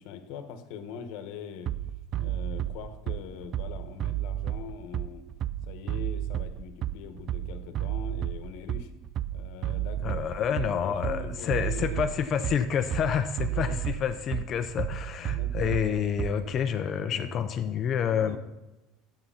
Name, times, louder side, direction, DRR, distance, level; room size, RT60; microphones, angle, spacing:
voice 1, 0.0-1.7 2.2-5.2 5.7-8.9 9.3-12.3 13.5-13.8 15.2-15.7 16.2-16.4 17.1-17.5 18.1-18.4, left 7 dB, 65° left, 9 dB, 1.1 m, -42 dB
Bass drum, 1.7-16.6, right 12 dB, 35° right, 0.4 m, -32 dB
voice 2, 10.0-18.4, left 8 dB, 35° left, 8 dB, 0.5 m, -28 dB
9.8 x 7.8 x 5.7 m, 1.0 s
supercardioid pair, 145°, 0 cm